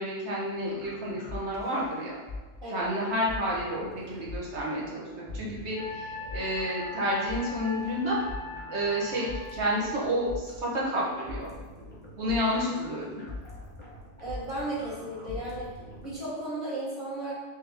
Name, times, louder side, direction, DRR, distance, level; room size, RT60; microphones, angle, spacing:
voice 1, 0.0-2.2 2.7-8.2 8.7-11.5 12.2-13.2, equal, 70° right, -5 dB, 1.3 m, -30 dB
sound 1, 0.6-16.1, left 2 dB, 10° left, 0.7 m, -43 dB
Wind instrument woodwind instrument, 5.7-10.0, left 2 dB, 60° left, 0.4 m, -41 dB
voice 2, 14.2-15.7 16.0-17.3, right 1 dB, 50° right, -13 dB, 1.3 m, -34 dB
3.5 x 2.9 x 3.4 m, 1.3 s
omnidirectional pair, 1.2 m